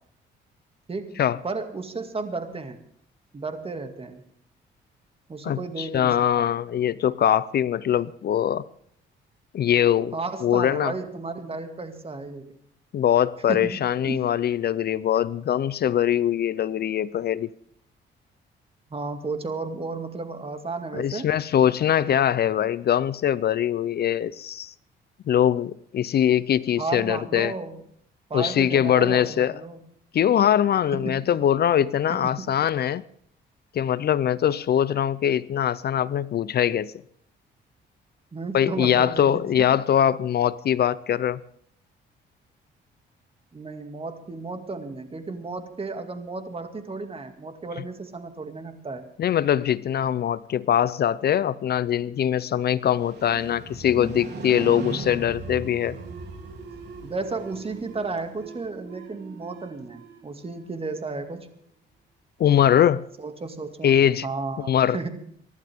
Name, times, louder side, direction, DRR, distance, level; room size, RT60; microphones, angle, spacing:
voice 1, 0.9-2.8 3.3-4.2 5.3-6.5 10.1-12.6 13.5-14.2 18.9-21.3 26.8-27.8 28.3-29.8 30.9-31.2 32.1-32.5 38.3-39.5 43.5-49.1 57.0-61.5 63.2-63.9 64.2-65.1, right 3 dB, 30° right, 7 dB, 2.2 m, -33 dB
voice 2, 5.4-8.6 9.5-10.1 10.4-10.9 12.9-17.5 20.9-24.7 25.3-27.5 28.3-29.5 30.1-33.0 33.7-36.9 38.5-41.4 49.2-56.0 62.4-63.0 63.8-64.3 64.7-65.0, left 10 dB, 55° left, 18 dB, 0.5 m, -22 dB
Motorcycle, 52.7-58.7, right 3 dB, 55° right, 3.6 m, -38 dB
sound 1, 54.5-61.7, right 5 dB, 85° right, 7.5 m, -46 dB
24.5 x 11.5 x 3.6 m, 0.67 s
cardioid pair, 90°, 20 cm